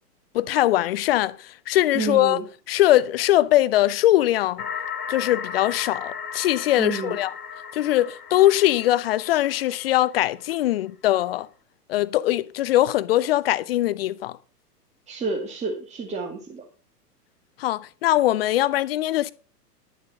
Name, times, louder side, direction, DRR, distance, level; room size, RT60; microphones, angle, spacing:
voice 1, 0.3-2.4 2.7-4.6 5.1-7.3 7.7-11.5 11.9-14.4 17.6-19.3, left 14 dB, 40° left, 0.7 m, -21 dB
voice 2, 1.9-2.5 6.8-7.2 15.1-16.6, right 4 dB, 15° right, 2.0 m, -30 dB
sound 1, 4.6-10.3, left 7 dB, 70° left, 2.1 m, -36 dB
11.5 x 7.5 x 5.3 m
figure-of-eight pair, 105°, 48 cm